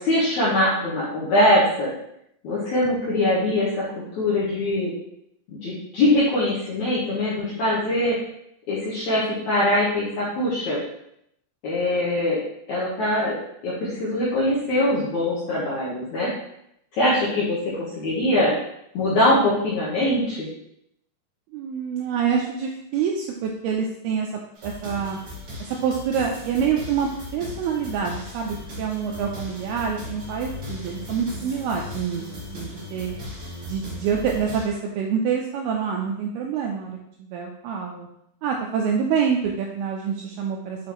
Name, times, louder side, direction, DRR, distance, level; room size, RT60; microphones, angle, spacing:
voice 1, 0.0-1.9 2.4-3.8 4.1-4.9 5.5-8.2 8.7-10.8 11.6-12.4 12.7-13.4 13.6-16.3 16.9-18.5 18.9-20.5, left 1 dB, 65° left, -8 dB, 1.9 m, -22 dB
voice 2, 21.5-24.3 24.6-25.2 25.6-32.3 32.5-33.1 33.6-38.1 38.4-40.9, right 7 dB, 85° right, 1 dB, 2.3 m, -26 dB
sound 1, 24.5-34.6, left 2 dB, 35° right, 2.3 m, -37 dB
7.5 x 5.2 x 3.0 m, 0.76 s
omnidirectional pair, 5.1 m